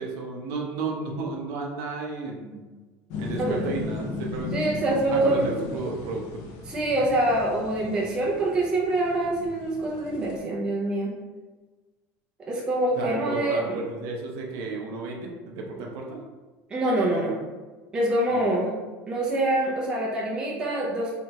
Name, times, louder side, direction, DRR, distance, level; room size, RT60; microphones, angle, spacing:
voice 1, 0.0-2.6 3.2-4.6 4.9-6.3 13.0-16.2 18.3-18.5, right 3 dB, 55° right, 0 dB, 0.6 m, -33 dB
sound 1, 3.1-10.4, left 3 dB, 55° left, 0.6 m, -37 dB
voice 2, 3.4-3.7 4.5-5.5 6.7-11.1 12.5-13.8 15.8-15.9 16.7-17.4 17.9-18.7 19.1-21.1, right 1 dB, 10° right, -5 dB, 0.5 m, -25 dB
3.3 x 2.8 x 2.9 m, 1.3 s
cardioid pair, 180°, 7 cm